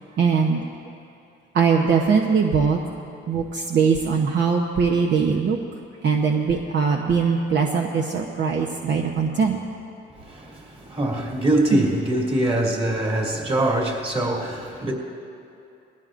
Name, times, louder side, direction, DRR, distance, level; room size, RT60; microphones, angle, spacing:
voice 1, 0.2-0.6 1.5-2.8 3.3-5.6 6.0-9.6 11.7-11.8, right 5 dB, 65° right, 0 dB, 0.9 m, -21 dB
voice 2, 10.2-14.9, right 1 dB, 30° right, -2 dB, 2.6 m, -23 dB
20.5 x 16.0 x 2.6 m, 2.7 s
cardioid pair, 90°, 20 cm